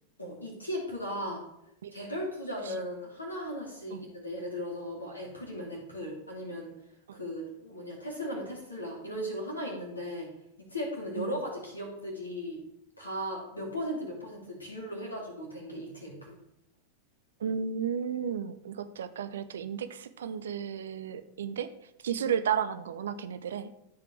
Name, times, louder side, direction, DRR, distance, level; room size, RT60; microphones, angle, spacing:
voice 1, 0.2-1.4 1.9-6.7 7.1-10.3 10.7-12.6 13.0-16.3, equal, 80° left, -2 dB, 2.9 m, -37 dB
voice 2, 17.4-21.7 22.0-23.7, right 7 dB, 65° right, 12 dB, 0.6 m, -33 dB
14.0 x 5.0 x 3.4 m, 0.80 s
figure-of-eight pair, 90°, 0 cm